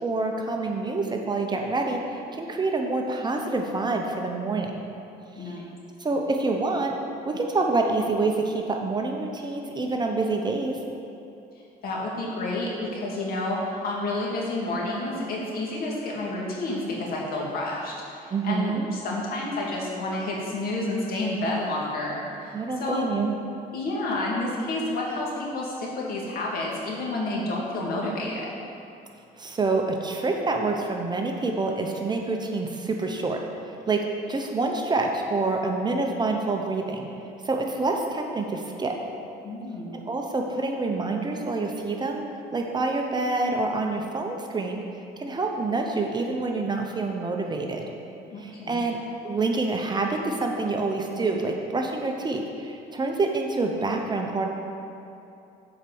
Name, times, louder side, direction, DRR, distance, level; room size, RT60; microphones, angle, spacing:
voice 1, 0.0-4.7 5.4-5.6 6.0-6.9 7.3-10.8 18.3-18.9 22.5-23.4 29.4-37.1 37.4-39.0 39.9-42.2 42.5-44.8 45.2-47.9 48.4-54.5, right 3 dB, 25° right, 2 dB, 0.8 m, -27 dB
voice 2, 5.3-5.7 11.8-17.9 18.2-22.5 22.8-23.1 23.7-28.5 39.4-40.0 48.3-48.9, left 2 dB, 60° left, -4 dB, 2.1 m, -30 dB
7.3 x 4.7 x 7.0 m, 2.7 s
cardioid pair, 110°, 17 cm